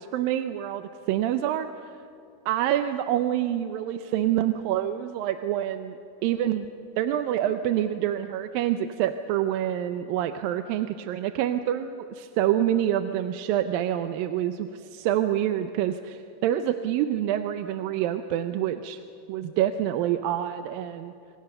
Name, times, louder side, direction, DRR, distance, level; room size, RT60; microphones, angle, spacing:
voice 1, 0.0-2.0 2.5-6.0 6.2-6.7 7.0-19.0 19.3-21.1, right 11 dB, 85° right, 8 dB, 2.5 m, -27 dB
27.0 x 26.5 x 6.7 m, 2.7 s
omnidirectional pair, 4.0 m